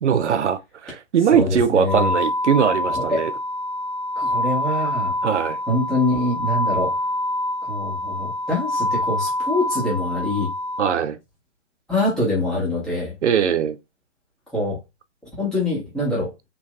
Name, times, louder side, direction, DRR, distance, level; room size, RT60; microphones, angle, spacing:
voice 1, 0.0-3.3 5.2-5.6 10.8-11.2 13.2-13.8, right 8 dB, 75° right, 0.6 m, -20 dB
voice 2, 1.3-2.1 2.9-3.2 4.2-5.1 5.7-6.9 7.6-10.5 11.9-13.1 14.5-14.8 15.4-16.3, left 2 dB, ahead, 0.8 m, -24 dB
sound 1, 1.9-10.9, left 1 dB, 20° right, 0.4 m, -26 dB
3.0 x 2.6 x 2.2 m
figure-of-eight pair, 140°, 35 cm